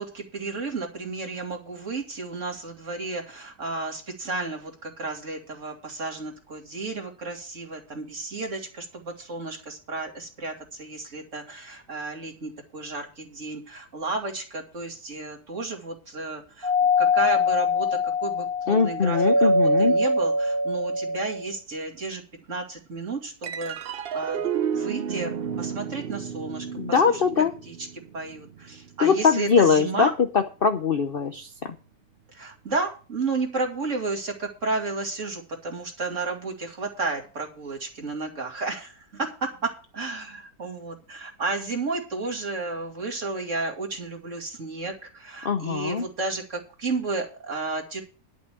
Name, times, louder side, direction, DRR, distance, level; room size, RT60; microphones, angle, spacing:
voice 1, 0.0-16.7 17.0-22.2 22.5-27.2 27.7-27.8 28.1-30.1 32.3-48.0, right 3 dB, 45° right, 1 dB, 2.7 m, -32 dB
Doorbell, 16.6-21.5, left 2 dB, 15° right, 1.3 m, -23 dB
voice 2, 18.7-19.9 26.8-27.5 29.0-31.5 45.4-46.0, left 5 dB, 50° left, 8 dB, 0.7 m, -22 dB
sound 1, 23.4-30.1, right 8 dB, 75° right, 0.5 m, -33 dB
11.5 x 6.2 x 7.4 m, 0.36 s
omnidirectional pair, 1.9 m